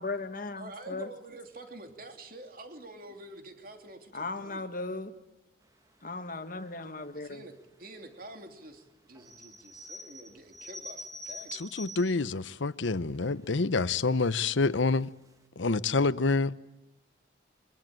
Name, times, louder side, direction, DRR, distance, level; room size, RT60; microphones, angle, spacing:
voice 1, 0.0-1.1 4.1-5.1 6.0-7.4, left 3 dB, 45° left, 1.8 m, -37 dB
voice 2, 0.6-4.6 7.1-7.5 7.8-11.9, right 2 dB, 50° right, 3.0 m, -47 dB
sound 1, 9.1-12.3 12.9-13.0 13.2-13.6 14.3-14.6 15.0-15.1 15.3-15.4, equal, 20° right, 1.5 m, -45 dB
voice 3, 11.5-15.1 15.6-16.6, left 3 dB, 80° left, 0.8 m, -27 dB
24.5 x 21.5 x 9.1 m
head